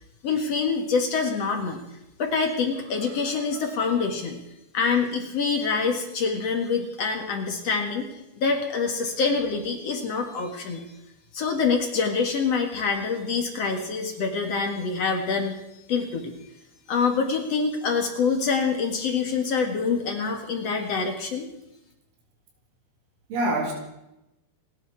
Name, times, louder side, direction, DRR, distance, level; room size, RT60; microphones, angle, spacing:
voice 1, 0.2-1.8 2.2-4.4 4.7-8.1 8.4-10.9 11.3-16.3 16.9-21.5, left 5 dB, 55° left, 4 dB, 1.9 m, -26 dB
voice 2, 3.1-3.6 23.3-23.7, right 1 dB, 80° right, -1 dB, 5.7 m, -28 dB
29.5 x 10.5 x 4.6 m, 0.90 s
omnidirectional pair, 5.3 m